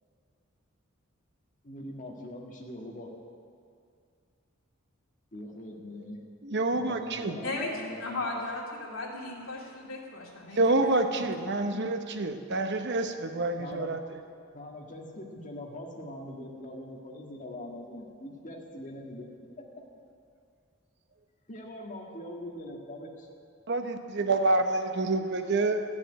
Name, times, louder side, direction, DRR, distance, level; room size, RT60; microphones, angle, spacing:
voice 1, 1.6-3.1 5.3-6.2 6.8-8.5 13.6-13.9 14.5-19.3 21.5-23.3, left 1 dB, 40° left, -1 dB, 1.8 m, -42 dB
voice 2, 6.4-7.4 10.5-14.0 23.7-25.8, right 2 dB, 55° right, 7 dB, 0.8 m, -27 dB
voice 3, 8.0-11.3 11.6-11.7, left 2 dB, 80° left, -3 dB, 2.6 m, -36 dB
13.0 x 7.2 x 9.3 m, 2.3 s
head